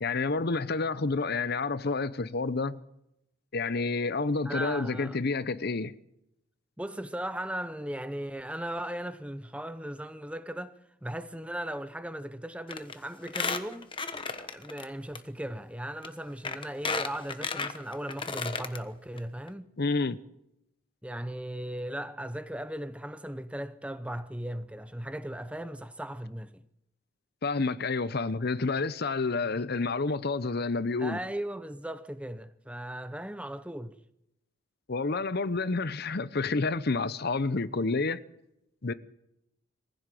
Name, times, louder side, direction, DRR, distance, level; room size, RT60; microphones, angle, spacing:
voice 1, 0.0-2.8 3.5-5.9 19.8-20.2 27.4-31.2 34.9-38.2 38.8-38.9, left 3 dB, 50° left, 0.7 m, -29 dB
voice 2, 4.4-5.2 6.8-13.9 14.4-19.7 21.0-26.6 31.0-34.0, right 1 dB, 5° right, 0.7 m, -37 dB
Squeak, 12.7-12.9 13.2-14.8 15.1-15.2 16.0-16.1 16.4-18.8 19.2-19.3 19.5-19.6, left 4 dB, 25° left, 1.2 m, -33 dB
23.0 x 15.5 x 7.6 m
head